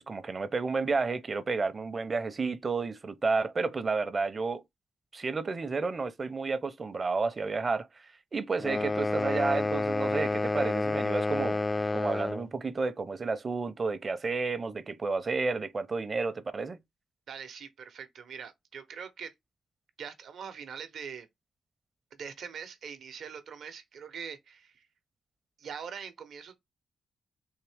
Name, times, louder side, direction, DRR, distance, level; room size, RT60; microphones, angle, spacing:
voice 1, 0.1-4.6 5.1-8.1 8.3-11.6 11.9-16.8, right 4 dB, 45° right, 0.6 m, -31 dB
sound 1, 8.6-12.5, left 2 dB, 25° left, 0.3 m, -29 dB
voice 2, 17.3-19.3 20.0-21.3 22.1-24.9 25.6-26.6, right 7 dB, 75° right, 0.8 m, -43 dB
3.6 x 2.8 x 3.5 m
supercardioid pair, 50°, 0 cm